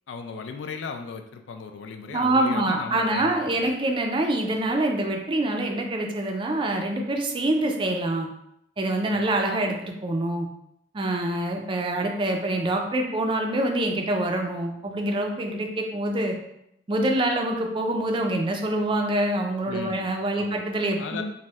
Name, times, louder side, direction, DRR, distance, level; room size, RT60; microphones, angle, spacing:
voice 1, 0.1-3.8 9.1-9.3 19.7-20.1 20.4-20.6 21.0-21.2, left 5 dB, 90° left, 6 dB, 0.3 m, -37 dB
voice 2, 2.1-8.3 8.8-10.5 10.9-16.4 16.9-21.2, right 1 dB, 30° right, 3 dB, 0.3 m, -25 dB
4.1 x 2.1 x 2.3 m, 0.79 s
head